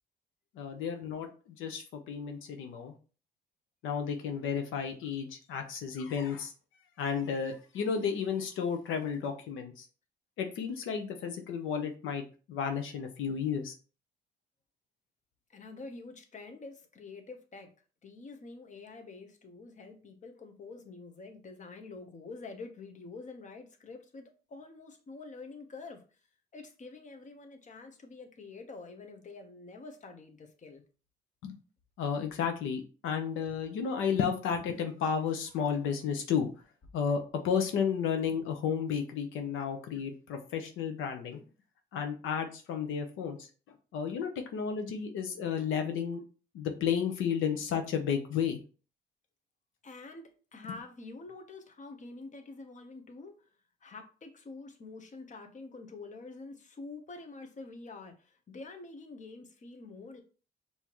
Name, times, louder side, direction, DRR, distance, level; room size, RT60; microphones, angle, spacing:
voice 1, 0.5-2.9 3.8-6.5 7.0-9.9 10.4-13.7 31.4-31.6 32.0-36.5 36.9-41.4 41.9-46.2 46.5-48.6, left 7 dB, 90° left, 0.8 m, -32 dB
voice 2, 15.5-17.7 18.0-26.2 26.5-30.8 49.8-53.5 53.8-60.2, left 3 dB, 40° left, 1.0 m, -47 dB
5.5 x 2.9 x 3.0 m
cardioid pair, 90°, 20 cm